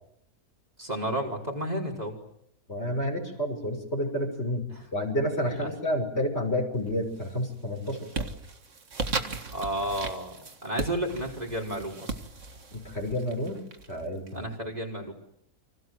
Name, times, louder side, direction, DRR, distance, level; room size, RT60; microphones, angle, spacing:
voice 1, 0.8-2.1 4.7-4.9 5.5-5.7 9.5-10.4 10.6-12.1 14.3-15.1, right 1 dB, 25° right, -1 dB, 4.8 m, -32 dB
voice 2, 2.7-4.7 4.9-8.3 12.7-13.6 13.9-14.5, left 1 dB, 45° left, 2 dB, 6.4 m, -30 dB
sound 1, 6.8-7.3 7.7-14.3, right 3 dB, 55° right, 2.1 m, -37 dB
29.5 x 25.5 x 7.9 m, 0.75 s
omnidirectional pair, 1.6 m